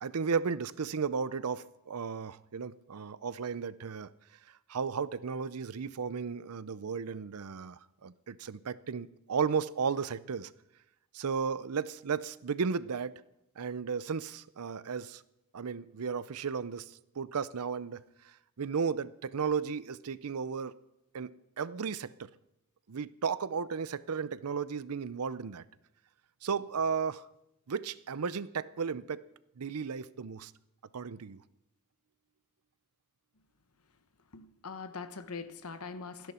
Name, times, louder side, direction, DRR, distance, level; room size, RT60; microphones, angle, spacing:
voice 1, 0.0-4.1 4.7-10.5 11.1-13.2 13.6-15.2 15.5-18.0 18.6-20.7 21.1-22.3 22.9-25.6 26.4-27.3 27.7-29.2 29.6-30.5 30.9-31.4, right 6 dB, 85° right, 0.6 m, -34 dB
voice 2, 34.3-36.3, left 4 dB, 80° left, 1.2 m, -42 dB
28.5 x 10.5 x 4.3 m
head